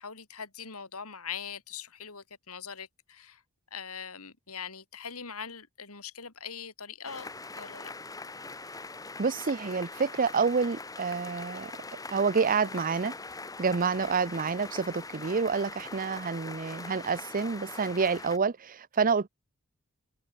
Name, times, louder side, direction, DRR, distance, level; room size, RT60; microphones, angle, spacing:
voice 1, 0.0-3.4 3.7-7.3 7.6-7.9 15.5-15.6, left 7 dB, 80° left, 3.9 m, -42 dB
sound 1, 7.0-18.4, left 3 dB, 15° left, 1.3 m, -42 dB
voice 2, 9.2-11.7 12.1-13.1 13.6-19.3, right 5 dB, 40° right, 0.6 m, -28 dB
open air
head